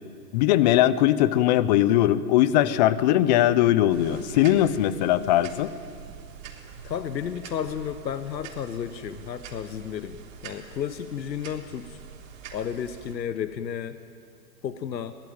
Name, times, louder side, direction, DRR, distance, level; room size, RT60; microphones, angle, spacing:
voice 1, 0.3-5.7, left 13 dB, 25° left, 16 dB, 0.7 m, -20 dB
sound 1, 3.9-13.1, right 7 dB, 50° right, 3.7 m, -44 dB
voice 2, 6.8-12.0 12.5-14.0 14.6-15.1, left 8 dB, 85° left, 11 dB, 1.3 m, -32 dB
22.5 x 19.5 x 8.9 m, 2.4 s
hypercardioid pair, 140°, 50 cm